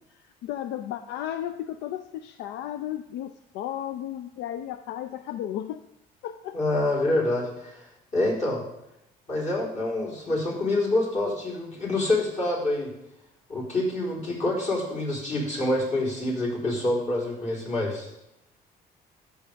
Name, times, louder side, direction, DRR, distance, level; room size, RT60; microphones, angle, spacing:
voice 1, 0.4-5.8 6.2-6.6, left 11 dB, 80° left, 9 dB, 0.4 m, -34 dB
voice 2, 6.5-7.9 8.1-8.6 9.3-12.9 13.5-18.1, left 2 dB, 45° left, -4 dB, 3.9 m, -26 dB
13.5 x 6.7 x 3.4 m, 0.83 s
cardioid pair, 110°, 17 cm